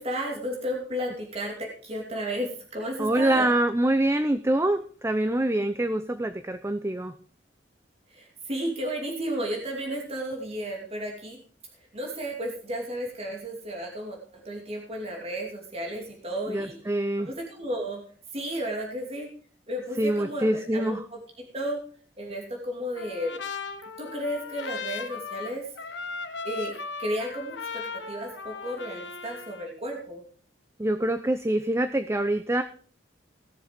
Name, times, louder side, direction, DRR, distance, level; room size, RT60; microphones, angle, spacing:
voice 1, 0.0-3.5 8.1-11.4 11.9-17.0 17.2-18.0 18.3-19.3 19.7-21.0 21.5-21.8 22.2-23.4 24.0-25.6 26.4-30.2, equal, 35° right, 0 dB, 2.7 m, -33 dB
voice 2, 3.0-7.2 16.5-17.3 20.0-21.0 30.8-32.6, right 1 dB, 15° right, 9 dB, 0.7 m, -25 dB
Trumpet, 23.0-29.7, left 4 dB, 80° left, 1.3 m, -37 dB
17.5 x 7.2 x 5.2 m, 0.44 s
head